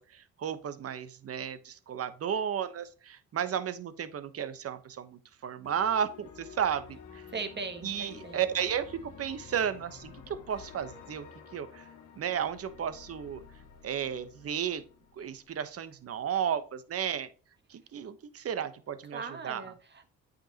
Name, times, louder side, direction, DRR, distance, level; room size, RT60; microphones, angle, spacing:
voice 1, 0.0-7.3 7.8-11.3 11.5-11.9 12.2-13.4 13.8-14.8 15.2-17.3 17.7-19.7, right 8 dB, 50° right, 12 dB, 1.0 m, -33 dB
sound 1, 5.6-15.7, left 7 dB, 85° left, 1.4 m, -51 dB
voice 2, 7.3-8.4 19.1-20.1, right 4 dB, 35° right, 6 dB, 1.5 m, -39 dB
8.7 x 5.3 x 2.8 m, 0.39 s
cardioid pair, 90°, 30 cm